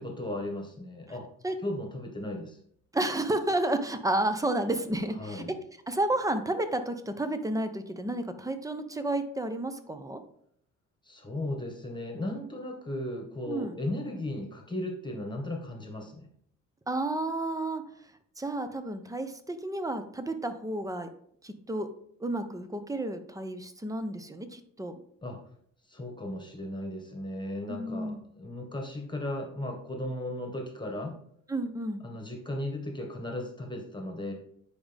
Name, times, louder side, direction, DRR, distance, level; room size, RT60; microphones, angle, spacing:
voice 1, 0.0-1.3 1.6-2.6 5.2-5.5 11.1-16.3 25.2-25.4 25.9-31.1 32.0-34.3, left 1 dB, 15° left, 2 dB, 1.7 m, -36 dB
voice 2, 2.9-5.6 5.9-10.2 13.5-13.8 16.9-17.8 18.4-21.1 21.4-21.9 22.2-24.9 27.7-28.2 31.5-32.0, right 1 dB, 10° right, 9 dB, 0.9 m, -31 dB
9.6 x 5.1 x 3.5 m, 0.66 s
cardioid pair, 90°, 32 cm